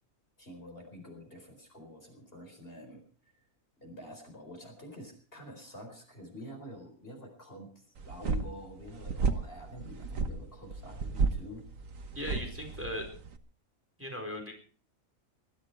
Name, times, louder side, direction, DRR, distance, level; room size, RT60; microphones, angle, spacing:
voice 1, 0.4-3.0 3.8-11.6, left 1 dB, 40° left, 3 dB, 4.7 m, -47 dB
sound 1, 8.0-13.4, right 4 dB, 65° right, 1.6 m, -33 dB
voice 2, 12.1-13.1 14.0-14.5, equal, 10° right, 2 dB, 4.5 m, -38 dB
20.5 x 14.0 x 4.6 m, 0.43 s
omnidirectional pair, 1.5 m